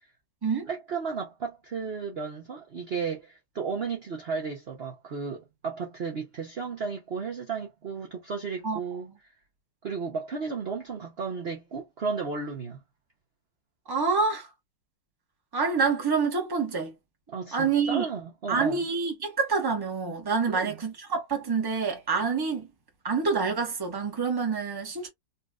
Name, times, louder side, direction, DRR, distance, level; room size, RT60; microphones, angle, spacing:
voice 1, 0.7-9.1 9.8-12.8 17.3-18.8 20.5-20.8, right 5 dB, 45° right, 0.9 m, -34 dB
voice 2, 13.9-14.5 15.5-16.9 17.5-18.1 18.5-22.7 23.0-25.1, right 5 dB, 15° right, 1.0 m, -27 dB
4.1 x 2.5 x 2.3 m
omnidirectional pair, 1.9 m